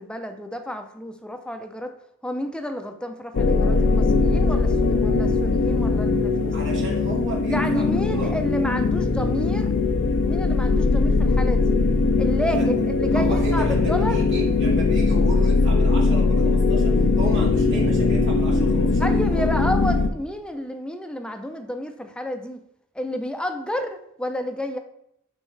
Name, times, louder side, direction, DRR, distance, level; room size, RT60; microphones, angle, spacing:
voice 1, 0.0-2.0 2.2-6.8 7.5-9.7 10.2-11.8 12.2-14.2 19.0-22.6 22.9-24.8, equal, 5° left, 6 dB, 0.5 m, -30 dB
sound 1, 3.3-20.1, left 3 dB, 60° left, 0.5 m, -20 dB
voice 2, 6.5-8.4 12.4-12.6 13.1-19.5, right 1 dB, 60° right, -2 dB, 1.1 m, -34 dB
8.6 x 3.7 x 3.2 m, 0.76 s
head